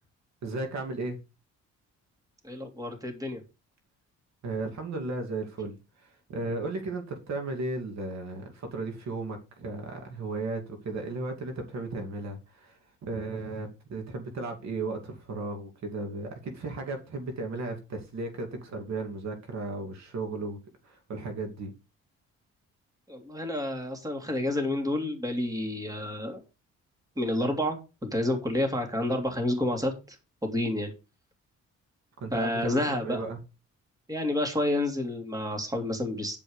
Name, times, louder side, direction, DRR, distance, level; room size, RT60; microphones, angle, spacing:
voice 1, 0.4-1.2 4.4-5.8 6.0-20.6 20.8-21.7 32.2-33.4, right 3 dB, 65° right, 2.6 m, -35 dB
voice 2, 2.4-3.4 23.1-26.4 27.2-30.2 30.4-30.9 32.3-33.2 34.1-36.4, left 1 dB, 10° right, 3.2 m, -29 dB
10.5 x 5.5 x 5.0 m
cardioid pair, 90°, 30 cm